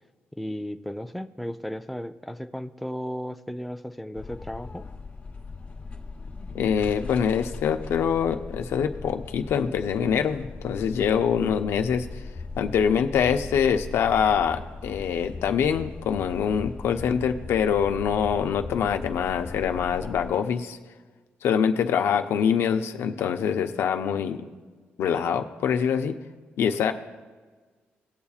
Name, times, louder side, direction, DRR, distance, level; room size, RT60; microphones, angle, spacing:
voice 1, 0.3-4.8, equal, ahead, 7 dB, 0.4 m, -35 dB
sound 1, 4.2-20.3, left 4 dB, 35° left, 1.1 m, -39 dB
voice 2, 6.5-12.1 12.6-20.8 21.4-24.4 25.0-26.1 26.6-26.9, left 7 dB, 80° left, 6 dB, 0.6 m, -24 dB
18.5 x 7.0 x 2.4 m, 1.4 s
cardioid pair, 95°, 4 cm